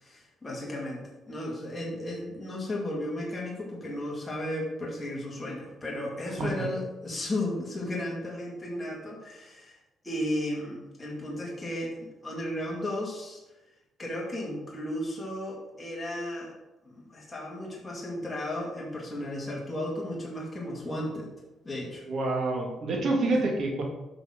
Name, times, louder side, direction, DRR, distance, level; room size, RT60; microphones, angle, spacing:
voice 1, 0.0-9.8 10.0-13.4 14.0-16.5 16.8-21.3 21.6-22.0 23.3-23.4, left 1 dB, 15° left, -3 dB, 2.1 m, -34 dB
voice 2, 22.1-23.8, right 2 dB, 60° right, 1 dB, 2.0 m, -27 dB
8.9 x 6.0 x 3.9 m, 1.0 s
cardioid pair, 90°, 0 cm